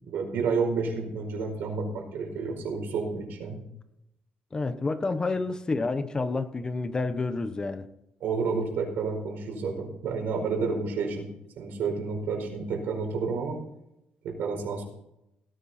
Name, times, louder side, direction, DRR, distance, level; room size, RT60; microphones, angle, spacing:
voice 1, 0.1-3.6 8.2-11.3 11.6-13.6 14.2-14.9, right 4 dB, 85° right, 2 dB, 4.6 m, -30 dB
voice 2, 4.5-7.8 10.7-10.8, left 3 dB, 25° left, 10 dB, 1.1 m, -29 dB
17.5 x 9.7 x 4.4 m, 0.83 s
cardioid pair, 120°, 3 cm